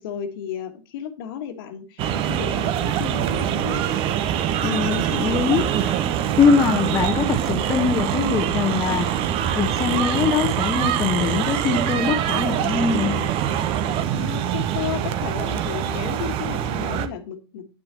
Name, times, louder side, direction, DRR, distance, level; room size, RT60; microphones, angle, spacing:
voice 1, 0.0-3.8 14.1-17.7, left 9 dB, 60° left, 1.5 m, -33 dB
sound 1, 2.0-17.1, right 10 dB, 45° right, 0.9 m, -24 dB
voice 2, 4.6-9.1 9.5-13.3, left 6 dB, 25° left, 1.0 m, -22 dB
9.8 x 8.6 x 2.9 m
figure-of-eight pair, 85°, 13 cm